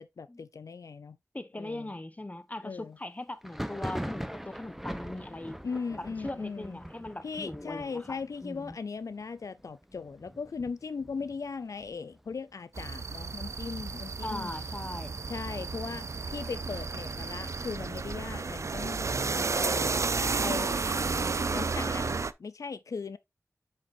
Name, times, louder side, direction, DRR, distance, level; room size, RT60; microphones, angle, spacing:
voice 1, 0.0-1.2 1.6-1.9 2.6-3.0 5.6-6.8 7.2-14.5 15.3-19.9 20.4-23.2, left 5 dB, 90° left, 0.4 m, -38 dB
voice 2, 1.3-5.6 6.0-8.8 14.2-15.2, left 1 dB, 30° left, 1.0 m, -40 dB
Thunder, 3.4-12.9 13.2-13.9 14.1-15.1 15.5-17.2, equal, 5° right, 0.8 m, -43 dB
sound 1, 12.8-22.3, right 4 dB, 65° right, 0.4 m, -32 dB
7.5 x 6.6 x 2.6 m
wide cardioid pair, 55°, 5 cm